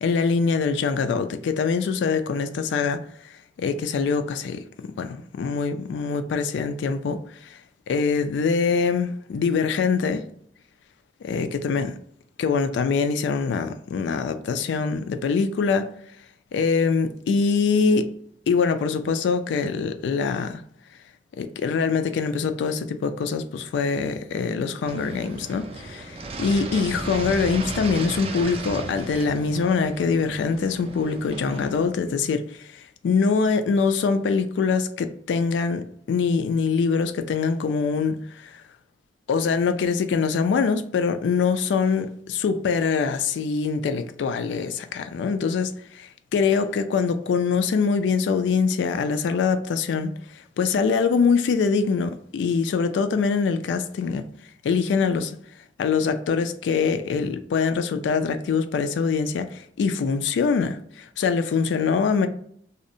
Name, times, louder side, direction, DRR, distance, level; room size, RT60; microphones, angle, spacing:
voice 1, 0.0-3.0 3.6-4.6 5.0-7.6 7.9-10.2 11.2-11.9 12.4-15.9 16.5-18.1 18.5-20.6 21.4-32.5 32.7-38.6 39.3-50.1 50.6-54.3 54.6-55.4 55.8-62.3, left 5 dB, 85° left, 0.3 m, -24 dB
sound 1, 24.8-31.8, right 3 dB, 30° right, 0.3 m, -35 dB
2.6 x 2.0 x 2.5 m
head